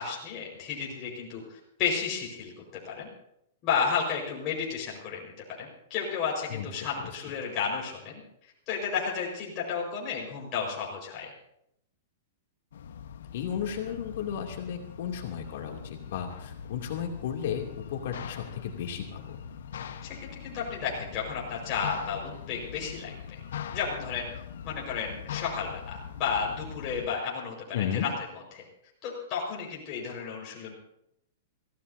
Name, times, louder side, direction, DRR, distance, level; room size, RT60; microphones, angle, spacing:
voice 1, 0.0-2.5 2.8-3.1 3.6-5.3 5.6-8.2 8.7-11.3 20.0-23.4 23.7-24.3 24.6-27.7 27.9-28.1 28.5-28.6 29.0-30.7, left 6 dB, 35° left, -3 dB, 5.3 m, -32 dB
sound 1, 12.7-27.1, left 8 dB, 80° left, 1.3 m, -42 dB
voice 2, 13.3-19.4 27.7-28.1, left 8 dB, 65° left, 2 dB, 2.9 m, -34 dB
24.0 x 16.5 x 2.8 m, 0.77 s
hypercardioid pair, 155°, 0 cm